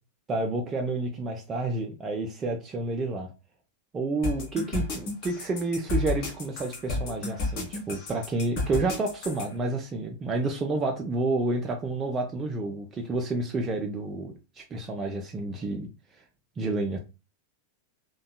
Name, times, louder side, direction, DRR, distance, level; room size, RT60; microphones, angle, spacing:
voice 1, 0.3-3.3 3.9-15.9 16.1-16.2 16.6-17.0, right 2 dB, 20° right, 0.3 m, -30 dB
sound 1, 4.2-9.5, left 3 dB, 45° left, 0.8 m, -31 dB
2.6 x 2.2 x 2.2 m
figure-of-eight pair, 90°, 0 cm